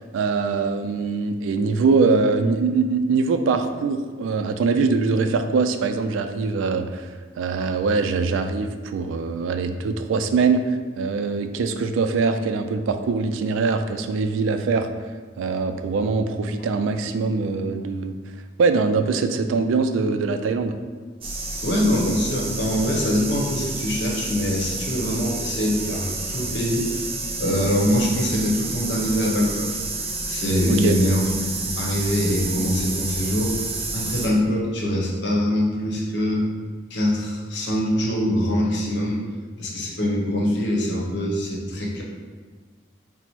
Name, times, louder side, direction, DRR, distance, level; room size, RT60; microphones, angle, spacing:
voice 1, 0.0-7.1 7.4-10.6 11.0-14.9 15.4-18.1 18.6-20.7 30.7-31.0, right 4 dB, 85° right, 8 dB, 0.3 m, -22 dB
sound 1, 21.2-34.3, right 3 dB, 30° right, 0.5 m, -30 dB
voice 2, 21.6-26.9 27.4-29.7 30.3-33.7 33.9-36.5 36.9-39.2 39.6-42.0, equal, 65° left, -2 dB, 0.8 m, -23 dB
4.2 x 2.0 x 4.4 m, 1.5 s
head